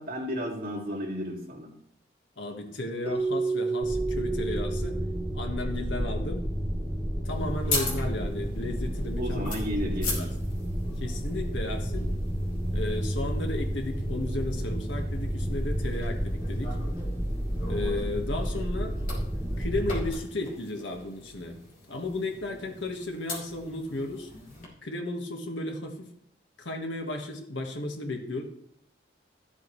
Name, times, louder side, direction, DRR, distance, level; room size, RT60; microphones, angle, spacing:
voice 1, 0.0-1.7 9.2-10.3, equal, 50° right, -2 dB, 2.4 m, -33 dB
voice 2, 2.4-5.0 5.3-6.4 7.2-9.5 9.8-10.3 11.0-12.1 12.7-16.8 17.7-18.9 19.6-21.6 21.9-24.3 24.8-26.1 26.6-28.4, left 2 dB, 90° left, 3 dB, 1.6 m, -34 dB
Keyboard (musical), 3.1-5.9, right 3 dB, 35° right, 2.2 m, -31 dB
sound 1, 3.8-20.1, equal, ahead, 1.6 m, -31 dB
sound 2, 7.2-24.6, left 2 dB, 45° left, 3.3 m, -41 dB
13.0 x 8.3 x 3.2 m, 0.71 s
head